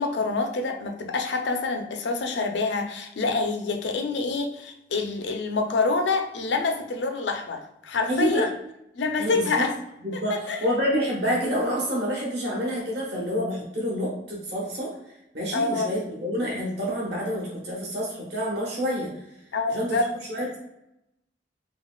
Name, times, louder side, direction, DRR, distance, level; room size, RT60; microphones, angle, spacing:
voice 1, 0.0-8.5 9.0-9.7 10.1-10.6 15.5-15.9 19.5-20.1, left 3 dB, 80° left, 5 dB, 0.5 m, -26 dB
voice 2, 8.1-8.4 9.2-9.7 10.0-14.9 15.3-19.1 19.7-19.9 20.3-20.6, equal, 65° right, -4 dB, 1.2 m, -28 dB
5.0 x 2.4 x 2.3 m, 0.83 s
head